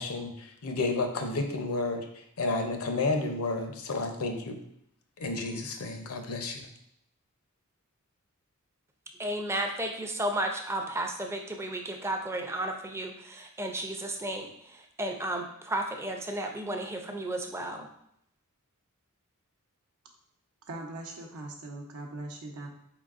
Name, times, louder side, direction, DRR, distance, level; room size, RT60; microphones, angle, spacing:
voice 1, 0.0-2.1 2.4-4.6 5.2-6.6, left 3 dB, 75° left, 5 dB, 0.6 m, -31 dB
voice 2, 9.2-14.5 15.0-17.9, right 1 dB, 10° right, 3 dB, 0.4 m, -33 dB
voice 3, 20.7-22.8, right 2 dB, 85° right, 2 dB, 0.8 m, -40 dB
4.5 x 3.8 x 2.4 m, 0.73 s
head